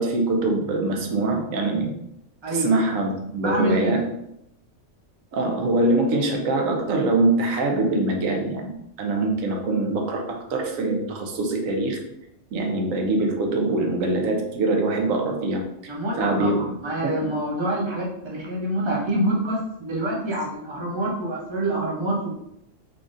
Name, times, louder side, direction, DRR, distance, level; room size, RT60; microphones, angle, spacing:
voice 1, 0.0-1.9 2.5-4.1 5.3-12.0 12.5-16.6 17.0-17.3, right 2 dB, 85° right, 2 dB, 1.1 m, -24 dB
voice 2, 3.4-4.0 15.9-22.3, right 1 dB, 25° right, -4 dB, 0.8 m, -26 dB
3.6 x 3.4 x 2.6 m, 0.79 s
omnidirectional pair, 1.3 m